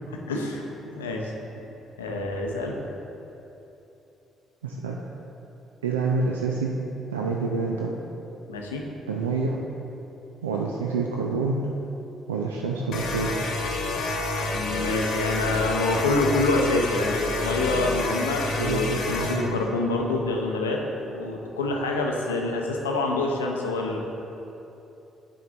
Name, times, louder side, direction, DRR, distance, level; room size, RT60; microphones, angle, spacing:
voice 1, 0.1-1.3 2.0-2.8 8.5-8.8 14.5-20.8 21.1-24.0, left 2 dB, 85° left, 0 dB, 0.6 m, -26 dB
voice 2, 4.6-5.0 5.8-6.8 7.1-7.9 9.1-9.6 10.4-11.6 12.3-13.5 18.6-19.6, right 4 dB, 85° right, -1 dB, 0.4 m, -27 dB
sound 1, 12.9-19.4, left 2 dB, 60° left, 1.1 m, -28 dB
8.7 x 4.7 x 3.8 m, 3.0 s
figure-of-eight pair, 45°, 0 cm